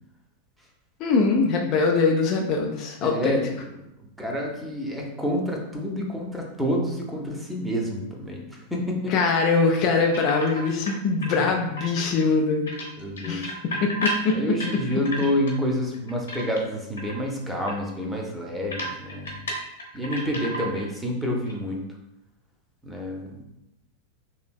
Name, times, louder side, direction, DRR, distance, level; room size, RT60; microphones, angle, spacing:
voice 1, 1.0-3.4 9.1-12.7 13.3-13.5 13.8-14.4, left 4 dB, 40° left, 1 dB, 0.3 m, -22 dB
voice 2, 3.0-3.5 4.2-9.1 13.0-13.5 14.3-19.4 19.9-21.8 22.8-23.4, left 1 dB, 5° right, -1 dB, 0.6 m, -28 dB
sound 1, 10.1-10.9 11.2-12.3 12.7-15.6 15.9-16.7 17.0-17.2 17.7-17.8 18.0-18.1 18.7-20.9 21.2-21.5, equal, 70° left, 0.8 m, -32 dB
3.2 x 2.9 x 2.3 m, 0.87 s
figure-of-eight pair, 90°, 0 cm